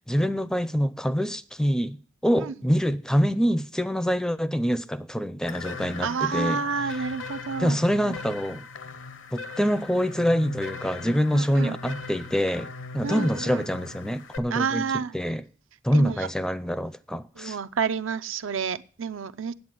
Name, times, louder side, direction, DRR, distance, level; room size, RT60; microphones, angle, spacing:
voice 1, 0.1-2.0 2.2-6.6 7.6-8.6 9.3-14.8 15.1-15.4 15.8-17.6, equal, 5° left, 0.4 m, -25 dB
sound 1, 5.4-14.4, left 4 dB, 70° left, 0.8 m, -39 dB
voice 2, 6.0-7.8 8.0-8.2 11.3-11.8 13.0-13.7 14.5-15.2 15.9-16.3 17.4-19.5, right 5 dB, 80° right, 0.6 m, -29 dB
9.4 x 8.0 x 7.6 m
head